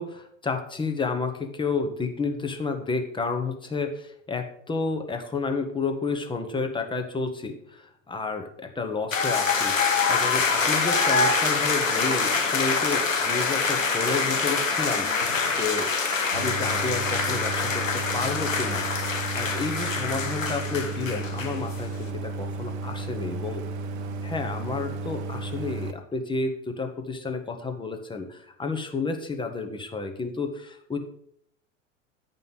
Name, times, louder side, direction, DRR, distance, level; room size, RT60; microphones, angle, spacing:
voice 1, 0.0-15.9 16.3-18.9 19.3-23.6 24.2-31.0, left 4 dB, 15° left, 5 dB, 1.1 m, -31 dB
sound 1, 9.1-21.8, left 4 dB, 85° left, 1.1 m, -25 dB
Idling, 16.3-25.9, right 3 dB, 55° right, 0.9 m, -33 dB
9.4 x 5.4 x 5.4 m, 0.69 s
figure-of-eight pair, 80°, 38 cm